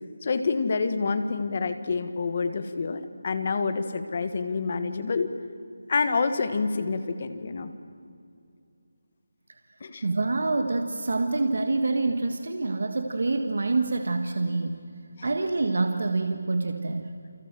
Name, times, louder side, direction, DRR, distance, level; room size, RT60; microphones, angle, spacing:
voice 1, 0.2-5.3 5.9-7.7 9.8-10.0 15.2-15.3, left 4 dB, 30° left, 10 dB, 1.3 m, -27 dB
voice 2, 10.0-14.8 15.2-17.2, right 3 dB, 50° right, 6 dB, 1.6 m, -26 dB
29.5 x 23.5 x 7.6 m, 2.4 s
figure-of-eight pair, 180°, 0 cm